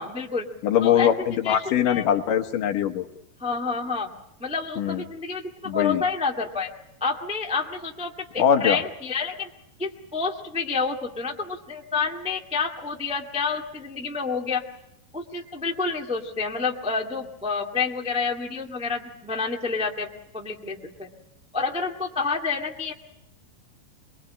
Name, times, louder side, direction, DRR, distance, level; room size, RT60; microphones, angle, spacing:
voice 1, 0.0-0.5 0.8-1.6 1.8-2.0 3.4-4.1 4.4-6.7 7.0-9.5 9.8-14.6 15.1-20.1 20.3-21.1 21.5-22.9, left 4 dB, 10° right, 1 dB, 0.3 m, -29 dB
voice 2, 0.6-3.1 4.8-5.0 5.7-6.0 8.4-8.8, left 9 dB, 65° left, 7 dB, 2.7 m, -22 dB
23.5 x 23.0 x 8.7 m, 0.83 s
omnidirectional pair, 4.4 m